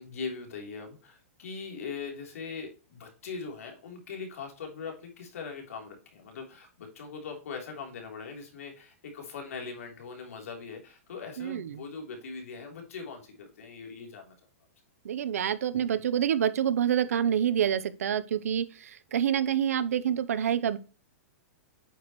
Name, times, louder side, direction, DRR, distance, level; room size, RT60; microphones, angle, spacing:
voice 1, 0.0-14.3, left 5 dB, 80° left, 3.4 m, -41 dB
voice 2, 11.4-11.8 15.0-20.8, right 9 dB, 80° right, 0.8 m, -27 dB
9.1 x 6.4 x 3.1 m
hypercardioid pair, 150°, 8 cm